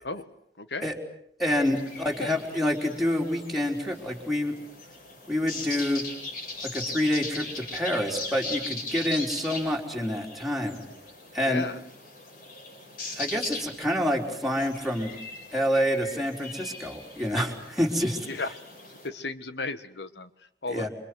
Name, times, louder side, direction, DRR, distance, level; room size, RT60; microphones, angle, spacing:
voice 1, 0.6-0.9 11.4-11.8 18.2-18.5 19.0-20.9, left 3 dB, 70° left, 12 dB, 1.6 m, -34 dB
voice 2, 1.4-4.5 5.3-6.0 6.7-10.8 11.3-11.7 13.2-15.1 15.5-18.2 20.7-20.9, left 1 dB, ahead, -1 dB, 4.3 m, -27 dB
sound 1, 1.6-19.1, left 3 dB, 55° left, 7.7 m, -40 dB
28.5 x 25.0 x 8.0 m, 0.69 s
head